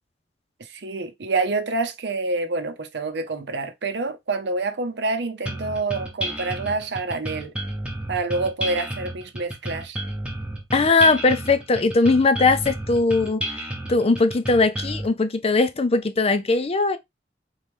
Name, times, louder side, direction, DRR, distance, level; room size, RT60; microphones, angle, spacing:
voice 1, 0.6-7.5 8.1-10.0, right 3 dB, 70° right, 0.7 m, -27 dB
sound 1, 5.5-15.1, right 1 dB, 5° right, 0.9 m, -32 dB
voice 2, 10.7-13.4 13.9-17.0, left 3 dB, 35° left, 0.5 m, -19 dB
3.9 x 3.2 x 3.5 m
head